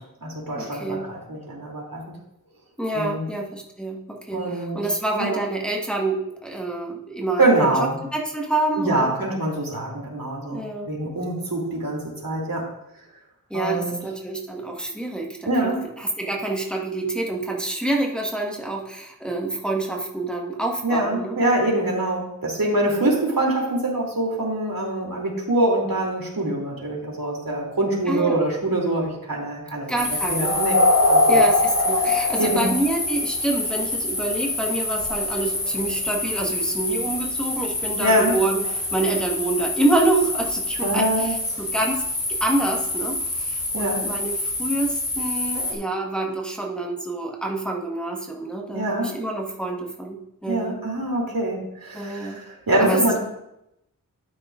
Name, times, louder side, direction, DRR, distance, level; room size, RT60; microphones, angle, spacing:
voice 1, 0.0-2.2 2.9-3.2 4.3-4.8 5.1-5.4 7.4-8.0 8.8-12.7 13.5-14.0 15.5-15.8 20.8-30.0 30.3-31.4 32.4-32.7 38.0-38.4 40.8-41.4 43.7-44.0 48.7-49.1 50.5-53.2, right 1 dB, 75° right, -2 dB, 2.7 m, -24 dB
voice 2, 0.5-1.1 2.8-7.7 8.1-9.1 10.5-10.9 13.5-15.7 16.0-21.4 22.8-23.1 28.1-28.4 29.9-30.6 31.3-42.0 42.3-50.8 51.9-52.4 52.8-53.2, right 2 dB, 5° left, -1 dB, 1.3 m, -27 dB
sound 1, 30.0-45.7, left 2 dB, 75° left, 3.5 m, -24 dB
12.5 x 9.5 x 2.4 m, 0.83 s
wide cardioid pair, 60°, 35 cm